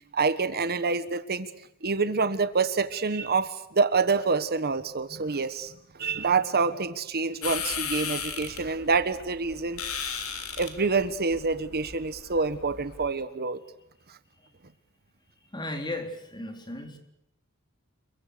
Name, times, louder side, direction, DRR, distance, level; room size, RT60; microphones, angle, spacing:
voice 1, 0.1-1.5 1.8-9.8 10.6-13.6 14.1-14.2, right 4 dB, 45° right, 12 dB, 1.3 m, -27 dB
sound 1, 7.4-13.1, left 7 dB, 70° left, 4.0 m, -36 dB
voice 2, 15.5-17.0, left 1 dB, 20° left, 5 dB, 3.9 m, -35 dB
29.5 x 23.0 x 6.8 m, 0.82 s
head